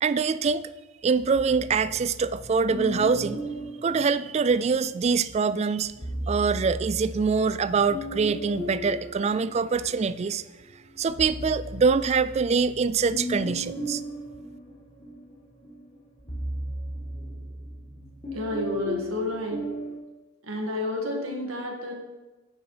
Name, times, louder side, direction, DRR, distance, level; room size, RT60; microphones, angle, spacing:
voice 1, 0.0-0.7 1.0-3.4 3.8-5.9 6.3-10.4 11.0-14.0, right 5 dB, 30° right, 15 dB, 0.3 m, -24 dB
sound 1, 1.3-4.8 5.8-10.2 10.7-20.0, equal, 30° left, 1.9 m, -36 dB
voice 2, 18.3-19.6 20.4-21.9, left 1 dB, 85° right, 1 dB, 1.8 m, -30 dB
9.8 x 7.1 x 4.8 m, 1.1 s
head